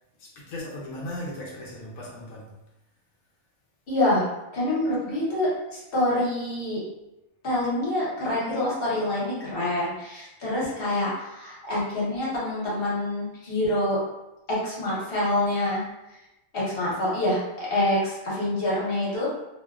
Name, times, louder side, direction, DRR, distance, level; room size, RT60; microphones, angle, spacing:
voice 1, 0.2-2.5, left 1 dB, 80° left, -3 dB, 1.0 m, -37 dB
voice 2, 3.9-4.2 4.5-6.8 7.4-14.0 14.5-15.8 16.5-19.3, left 1 dB, 45° left, -7 dB, 1.0 m, -26 dB
2.6 x 2.2 x 2.3 m, 0.96 s
omnidirectional pair, 1.5 m